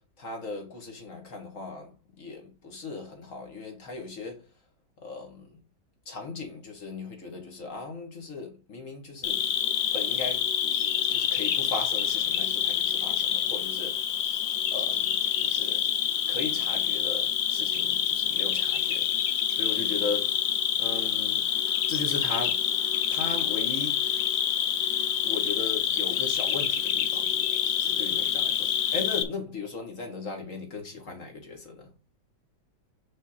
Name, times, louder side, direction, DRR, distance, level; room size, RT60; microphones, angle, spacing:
voice 1, 0.2-1.9 2.2-4.4 5.0-5.5 6.1-9.4 9.9-10.5 11.1-14.0 14.7-15.8 16.3-19.1 19.5-20.3 20.8-21.5 21.9-22.6 23.1-24.0 25.2-27.3 28.0-31.9, left 3 dB, 45° left, 2.0 m, -37 dB
Cricket, 9.2-29.2, left 9 dB, 70° left, 1.5 m, -27 dB
6.1 x 6.0 x 4.3 m
omnidirectional pair, 2.1 m